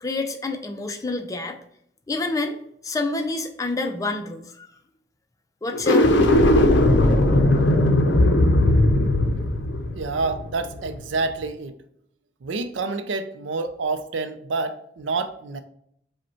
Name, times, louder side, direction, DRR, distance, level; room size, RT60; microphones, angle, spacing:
voice 1, 0.0-1.6 2.1-2.6 2.8-4.7 5.6-6.4, left 3 dB, 20° left, 5 dB, 0.4 m, -28 dB
sound 1, 5.7-11.0, left 1 dB, 70° left, 0.5 m, -18 dB
voice 2, 9.9-11.7 12.4-15.6, right 3 dB, 85° right, 9 dB, 0.5 m, -28 dB
5.0 x 2.2 x 4.3 m, 0.72 s
head